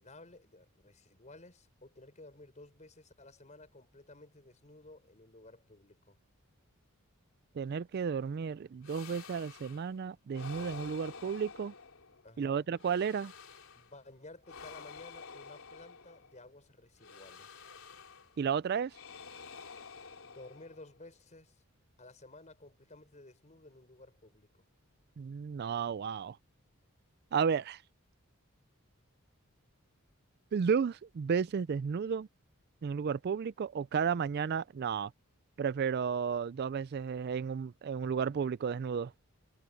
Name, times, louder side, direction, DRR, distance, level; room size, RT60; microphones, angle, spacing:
voice 1, 0.0-6.2 12.2-12.7 13.8-17.7 20.3-21.6 22.0-24.6, left 2 dB, 35° left, 5.1 m, -54 dB
voice 2, 7.6-11.7 12.4-13.3 18.4-18.9 25.2-26.4 27.3-27.8 30.5-32.3 32.8-35.1 35.6-39.1, right 6 dB, 45° right, 0.3 m, -33 dB
sound 1, 8.8-9.9 10.3-12.3 12.7-14.0 14.4-16.4 17.0-18.4 18.9-21.0, left 5 dB, 75° left, 2.9 m, -50 dB
head